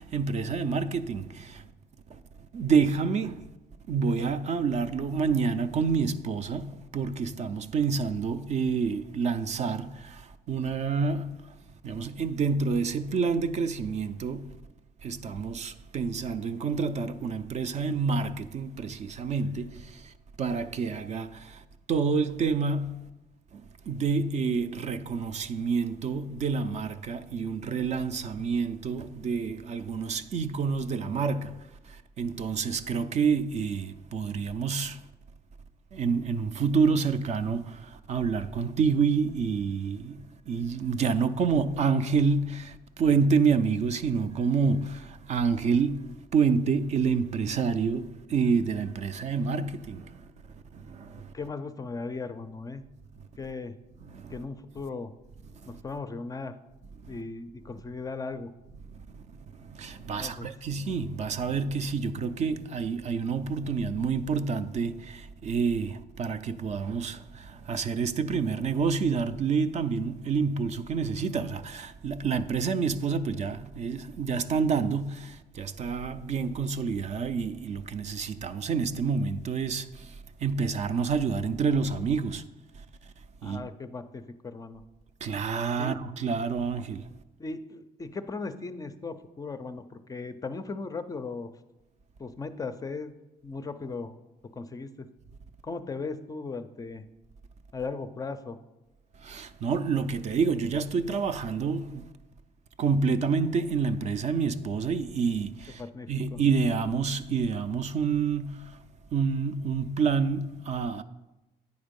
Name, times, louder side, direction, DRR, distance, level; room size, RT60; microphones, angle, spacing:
voice 1, 0.0-1.7 2.1-2.2 2.5-3.5 3.9-11.6 11.8-14.5 15.0-23.1 23.5-35.0 35.9-50.3 50.7-51.3 54.1-54.4 55.6-55.8 57.0-57.2 58.9-59.2 59.6-80.1 80.4-82.4 83.4-83.7 85.2-87.1 99.2-102.1 102.8-105.8 106.1-108.8 109.1-111.0, right 5 dB, 45° right, 0.4 m, -28 dB
voice 2, 51.2-52.8 53.4-53.8 54.3-55.1 55.7-56.5 57.1-58.5 60.2-60.5 83.4-84.8 85.8-86.0 87.4-91.5 92.2-93.1 93.4-94.2 94.6-95.1 95.6-97.0 97.7-98.6 105.8-106.4, left 4 dB, 20° left, 0.4 m, -37 dB
9.5 x 4.4 x 5.2 m
cardioid pair, 110°, 17 cm